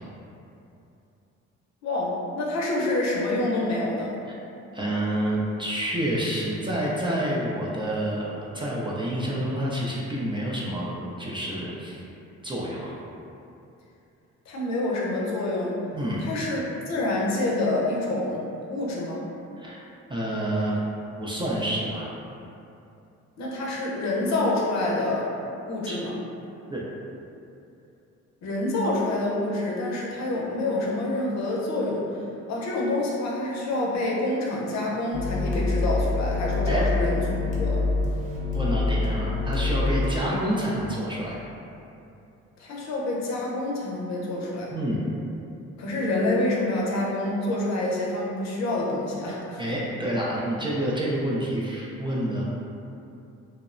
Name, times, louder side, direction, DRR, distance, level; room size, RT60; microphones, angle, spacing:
voice 1, 1.8-4.1 14.5-15.8 16.2-18.4 18.7-19.3 23.4-25.3 25.6-26.1 28.4-32.1 32.5-37.3 37.6-37.9 42.6-44.7 45.8-49.8, left 2 dB, 65° left, -4 dB, 0.6 m, -27 dB
voice 2, 4.7-12.0 12.4-12.9 15.9-16.3 19.6-19.8 20.1-20.8 21.2-22.1 25.9-26.0 26.7-26.8 36.7-36.8 38.5-41.4 44.7-45.0 49.6-52.4, right 1 dB, 15° right, -6 dB, 0.3 m, -28 dB
sound 1, 35.1-40.1, left 3 dB, 25° left, 0.6 m, -25 dB
2.9 x 2.0 x 2.4 m, 2.7 s
cardioid pair, 90°, 30 cm